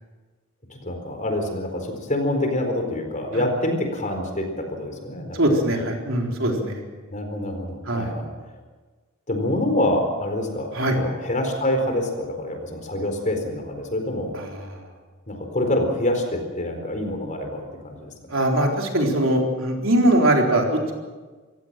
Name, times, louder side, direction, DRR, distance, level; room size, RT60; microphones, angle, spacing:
voice 1, 0.7-5.4 7.1-8.3 9.3-14.3 15.3-18.4, left 1 dB, 35° left, 4 dB, 4.3 m, -26 dB
voice 2, 5.3-6.8 7.9-8.1 10.7-11.0 14.3-14.8 18.3-20.7, right 1 dB, 70° right, 1 dB, 4.0 m, -21 dB
26.5 x 16.0 x 7.6 m, 1.3 s
head